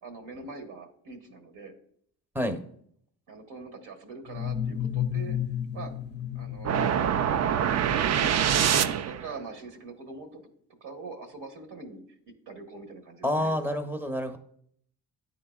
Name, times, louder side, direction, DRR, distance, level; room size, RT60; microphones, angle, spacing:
voice 1, 0.0-1.7 3.3-5.4 5.7-5.9 6.3-7.1 8.0-8.4 8.6-10.4 10.8-12.0 12.5-13.5, right 4 dB, 65° right, 4 dB, 1.4 m, -43 dB
sound 1, 4.3-8.0, left 9 dB, 25° left, 0.5 m, -33 dB
sound 2, 6.6-9.3, right 9 dB, 40° right, 0.4 m, -24 dB
voice 2, 13.2-14.4, left 1 dB, 5° right, 7 dB, 0.8 m, -28 dB
10.5 x 3.8 x 2.4 m, 0.65 s
supercardioid pair, 55°, 44 cm